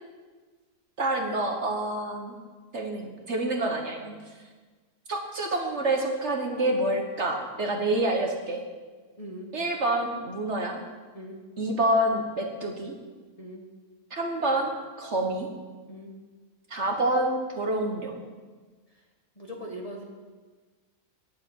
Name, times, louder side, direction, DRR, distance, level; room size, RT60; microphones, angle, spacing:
voice 1, 1.0-2.3 2.7-4.1 5.1-8.6 9.5-10.8 11.6-12.9 14.1-15.5 16.7-18.2, right 1 dB, 50° right, 2 dB, 1.4 m, -27 dB
voice 2, 9.2-9.5 11.1-11.4 13.4-13.6 15.9-16.1 19.4-20.0, equal, 25° left, -1 dB, 1.5 m, -40 dB
9.5 x 7.4 x 9.1 m, 1.4 s
omnidirectional pair, 1.6 m